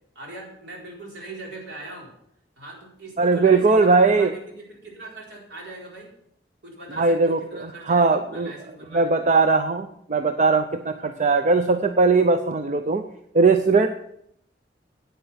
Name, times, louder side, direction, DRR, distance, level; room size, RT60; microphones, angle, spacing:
voice 1, 0.1-2.1 2.6-6.1 6.6-9.2, right 2 dB, 70° right, -2 dB, 4.4 m, -40 dB
voice 2, 3.2-4.3 7.0-7.4 7.9-8.5 8.9-13.0 13.3-13.9, right 4 dB, 45° right, 8 dB, 0.6 m, -19 dB
10.0 x 9.1 x 5.8 m, 0.73 s
head